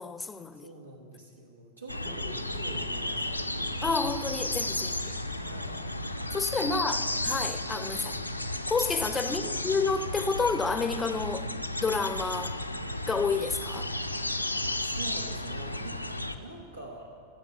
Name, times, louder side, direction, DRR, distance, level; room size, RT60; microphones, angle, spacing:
voice 1, 0.0-0.7 3.8-5.1 6.3-7.0 7.2-8.2 8.7-11.5 11.8-12.6 13.1-13.9, left 4 dB, 15° left, 0.6 m, -29 dB
voice 2, 0.5-3.9 4.5-4.7 5.4-5.9 6.2-6.4 6.7-7.1 8.0-8.2 9.2-9.7 13.9-14.0 14.8-17.2, right 1 dB, 85° right, 1.4 m, -45 dB
sound 1, 1.9-16.4, left 1 dB, 85° left, 0.6 m, -33 dB
14.5 x 7.3 x 7.8 m
figure-of-eight pair, 90°, 0 cm